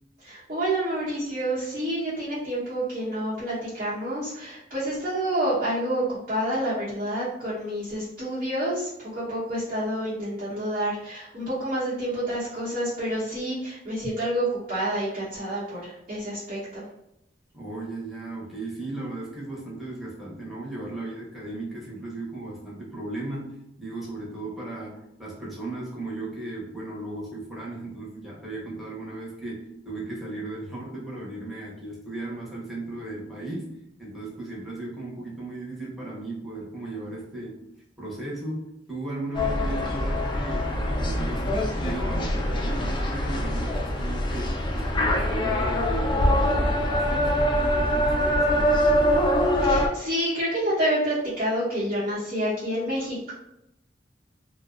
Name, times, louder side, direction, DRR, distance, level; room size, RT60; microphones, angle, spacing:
voice 1, 0.2-16.8 49.6-53.3, right 1 dB, 50° right, -11 dB, 0.9 m, -28 dB
voice 2, 17.5-37.6 38.0-49.1, right 2 dB, ahead, -6 dB, 0.7 m, -36 dB
sound 1, 39.3-49.9, equal, 25° left, 0.3 m, -24 dB
2.5 x 2.1 x 2.4 m, 0.82 s
head